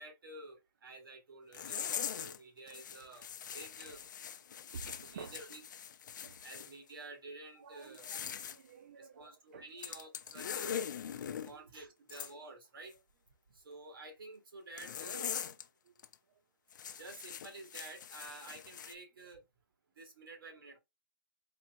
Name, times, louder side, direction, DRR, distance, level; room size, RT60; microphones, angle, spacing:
voice 1, 0.0-4.0 5.1-5.6 6.4-8.0 8.9-10.8 11.5-13.0 13.5-15.4 16.9-19.4 20.0-20.8, right 2 dB, 80° right, 1.9 m, -51 dB
sound 1, 1.5-2.4 2.7-6.7 7.8-8.6 9.8-11.5 12.1-12.3 14.8-15.6 16.0-16.1 16.7-18.9, left 8 dB, 55° left, 0.5 m, -42 dB
voice 2, 4.7-5.4 6.2-6.3 7.6-9.7 11.3-11.7, right 5 dB, 40° right, 0.4 m, -51 dB
3.9 x 2.0 x 4.3 m
hypercardioid pair, 175°, 12 cm